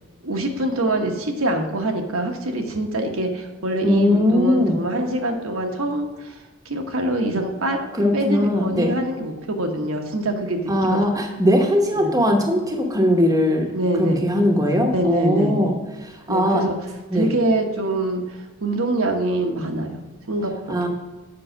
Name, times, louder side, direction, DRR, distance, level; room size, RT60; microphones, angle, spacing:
voice 1, 0.2-6.3 6.6-11.0 12.0-12.2 13.7-14.2 14.9-15.7 16.3-16.8 17.1-20.0 20.3-20.8, right 1 dB, 70° right, 3 dB, 1.1 m, -24 dB
voice 2, 3.8-4.8 8.0-8.9 10.7-13.7 14.0-15.7 16.0-16.7 17.1-17.3 20.7-20.9, left 1 dB, 15° right, 2 dB, 0.9 m, -20 dB
7.6 x 5.5 x 6.2 m, 1.2 s
head